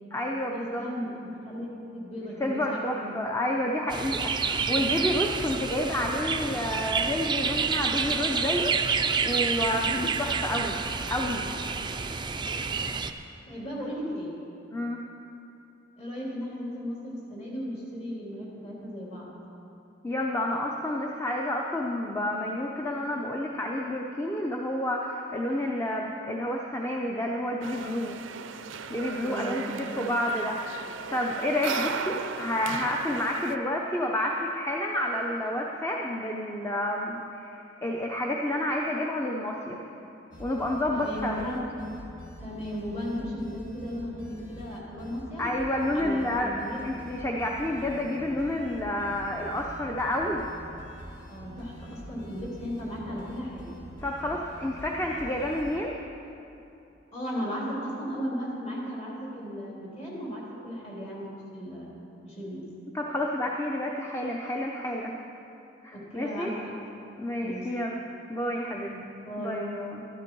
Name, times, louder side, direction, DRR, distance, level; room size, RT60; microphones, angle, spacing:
voice 1, 0.1-0.9 2.4-10.8 11.1-11.4 14.7-15.0 20.0-28.2 28.9-30.6 31.1-39.8 40.4-41.4 45.4-50.5 54.0-55.9 62.9-65.2 65.8-66.7 67.2-68.0 68.3-68.9 69.4-70.1, left 1 dB, 15° left, 0 dB, 0.7 m, -30 dB
voice 2, 0.8-3.1 9.7-10.0 13.5-14.4 16.0-19.3 29.2-29.6 30.0-30.1 33.2-33.4 40.9-41.6 42.4-45.4 45.9-46.8 51.3-53.7 57.1-61.2 61.5-61.9 62.2-62.6 65.9-66.7 67.4-67.7 68.8-69.6, equal, 35° left, -5 dB, 3.2 m, -36 dB
sound 1, 3.9-13.1, right 5 dB, 25° right, 0.5 m, -29 dB
sound 2, 27.6-33.6, right 6 dB, 90° right, 0.5 m, -36 dB
sound 3, 40.3-55.8, equal, 75° left, 1.8 m, -45 dB
12.5 x 11.5 x 4.6 m, 2.8 s
head